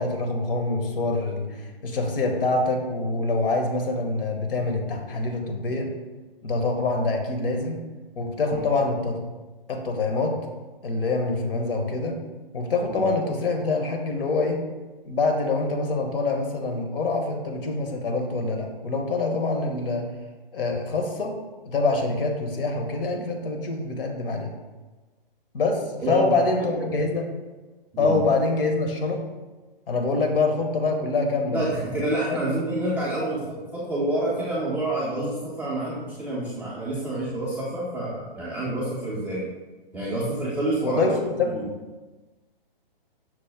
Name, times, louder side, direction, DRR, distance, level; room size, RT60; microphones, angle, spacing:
voice 1, 0.0-5.9 6.4-7.8 8.2-9.2 9.7-10.4 10.8-12.2 12.5-14.6 15.0-20.1 20.5-21.3 21.6-24.5 25.5-27.2 28.0-29.2 29.9-31.7 32.3-32.4 40.8-41.5, left 3 dB, 70° left, 3 dB, 0.9 m, -25 dB
voice 2, 26.0-26.8 27.9-28.2 31.5-39.4 39.9-41.0 41.4-41.6, right 1 dB, 5° right, -11 dB, 0.4 m, -28 dB
6.0 x 2.1 x 3.3 m, 1.2 s
hypercardioid pair, 145°, 29 cm